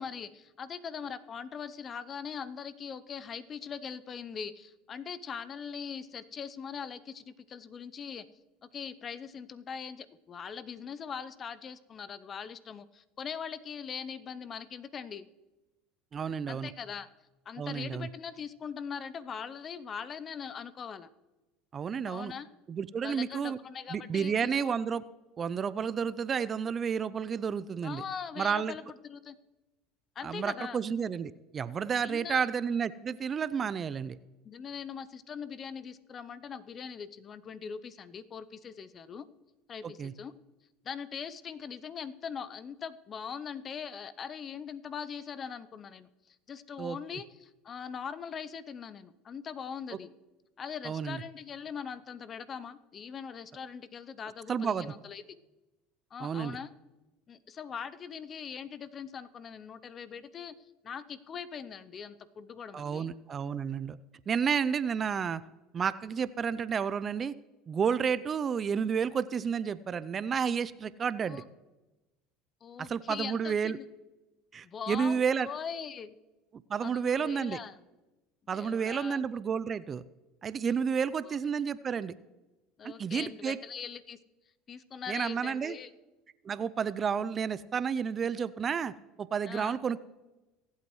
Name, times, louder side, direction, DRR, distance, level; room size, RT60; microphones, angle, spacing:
voice 1, 0.0-8.2 8.6-15.3 16.5-17.1 17.5-21.1 22.1-22.5 23.0-24.7 27.8-29.4 30.2-30.8 32.0-32.5 34.4-39.3 39.7-40.3 40.8-50.1 50.6-55.4 56.1-56.7 57.3-60.6 60.8-63.1 71.2-71.5 72.6-73.8 74.6-76.2 76.8-77.8 78.5-79.2 81.2-81.4 82.8-84.2 84.7-85.9 89.5-89.8, left 6 dB, 35° left, 15 dB, 0.7 m, -41 dB
voice 2, 16.1-16.7 17.6-18.1 21.7-22.3 22.7-23.6 23.9-25.0 25.4-28.0 28.4-28.7 30.2-34.2 39.8-40.1 46.8-47.0 50.8-51.2 54.5-54.9 56.2-56.6 62.7-64.0 64.3-65.4 65.7-67.3 67.7-71.4 72.8-73.8 74.5-75.5 76.7-77.6 78.5-80.0 80.4-82.1 82.8-83.6 85.1-85.8 86.4-88.9 89.2-90.0, right 6 dB, 35° right, 17 dB, 0.5 m, -31 dB
24.0 x 8.3 x 3.1 m, 1.1 s
hypercardioid pair, 85°, 0 cm